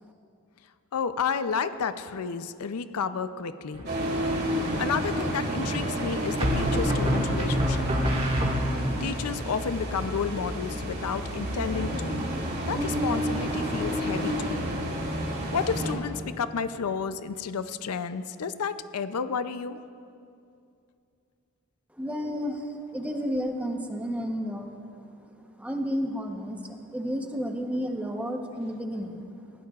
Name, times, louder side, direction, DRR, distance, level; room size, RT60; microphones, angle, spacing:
voice 1, 0.9-3.9 4.4-7.9 9.0-12.3 12.7-14.8 15.5-19.8, left 6 dB, 85° left, 12 dB, 0.5 m, -31 dB
sound 1, 3.7-4.3 6.4-9.1, equal, 30° right, 1.7 m, -27 dB
sound 2, 3.9-15.9, equal, 50° right, 2.3 m, -30 dB
voice 2, 21.9-24.8 25.6-29.3, equal, 5° right, 3 dB, 0.9 m, -32 dB
20.5 x 16.5 x 2.4 m, 2.5 s
head